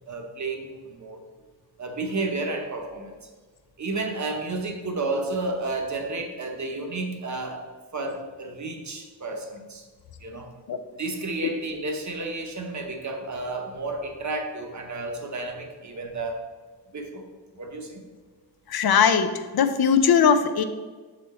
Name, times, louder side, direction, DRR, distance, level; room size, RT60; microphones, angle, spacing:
voice 1, 0.1-1.2 1.8-3.3 3.8-9.8 10.2-10.5 10.9-16.4 16.9-17.2 17.5-18.0, right 2 dB, 45° right, 3 dB, 0.9 m, -32 dB
voice 2, 18.7-20.6, left 7 dB, 60° left, 9 dB, 0.6 m, -20 dB
7.4 x 4.2 x 4.2 m, 1.4 s
wide cardioid pair, 175°, 42 cm